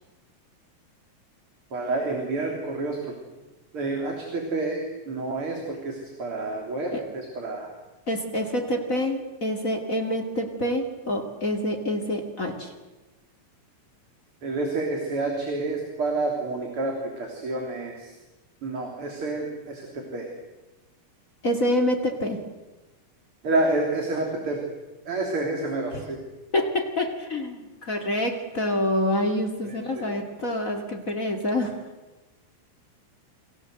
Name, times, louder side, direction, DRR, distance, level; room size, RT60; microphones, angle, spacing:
voice 1, 1.7-3.2 3.7-7.7 14.4-18.1 18.6-20.3 23.4-24.6 25.1-26.2 29.6-30.0, right 2 dB, 40° right, 1 dB, 4.0 m, -29 dB
voice 2, 8.1-12.7 21.4-22.4 25.9-26.1 26.5-31.8, left 1 dB, 25° left, 5 dB, 2.4 m, -27 dB
29.5 x 23.0 x 7.9 m, 1.1 s
omnidirectional pair, 3.9 m